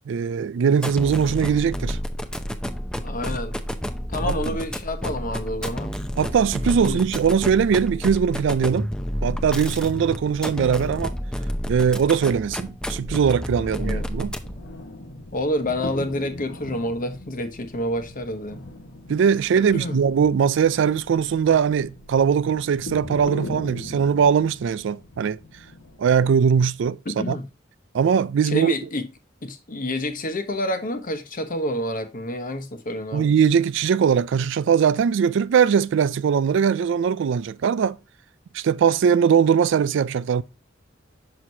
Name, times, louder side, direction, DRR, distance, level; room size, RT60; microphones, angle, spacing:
voice 1, 0.1-2.0 4.2-4.6 6.2-8.9 9.2-11.1 11.7-14.3 19.1-25.4 26.0-27.0 27.3-27.4 27.9-28.7 33.1-38.0 38.5-40.4, right 7 dB, 65° right, 0.3 m, -20 dB
sound 1, 0.8-14.7, equal, 5° left, 0.6 m, -30 dB
voice 2, 3.0-3.6 4.1-5.9 6.8-7.0 13.6-14.1 15.3-18.6 19.7-20.0 27.0-27.5 28.4-29.0 29.4-33.3, left 1 dB, 45° left, 1.0 m, -28 dB
sound 2, 14.4-26.4, left 1 dB, 75° left, 1.3 m, -40 dB
6.2 x 5.9 x 2.7 m
head